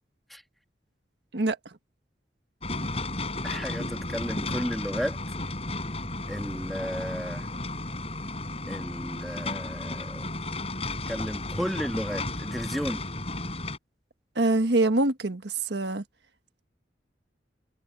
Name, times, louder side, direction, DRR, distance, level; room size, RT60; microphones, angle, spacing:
sound 1, 2.6-13.8, left 2 dB, 35° left, 7.9 m, -33 dB
voice 1, 3.4-5.2 6.3-7.5 8.7-10.3 11.1-13.0, equal, ahead, 1.7 m, -33 dB
voice 2, 14.3-16.0, right 2 dB, 80° right, 1.4 m, -24 dB
head